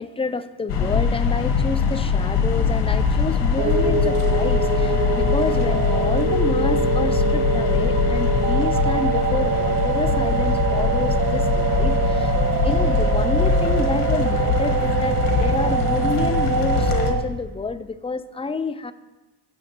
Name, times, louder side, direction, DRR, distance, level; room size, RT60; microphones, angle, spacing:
voice 1, 0.0-12.4 12.6-18.9, left 4 dB, 15° left, 12 dB, 0.4 m, -29 dB
sound 1, 0.7-17.1, left 5 dB, 90° left, 1.2 m, -22 dB
random switcher, 3.6-17.2, right 6 dB, 50° right, 0.6 m, -24 dB
16.5 x 6.3 x 3.0 m, 1.1 s
cardioid pair, 90°, 39 cm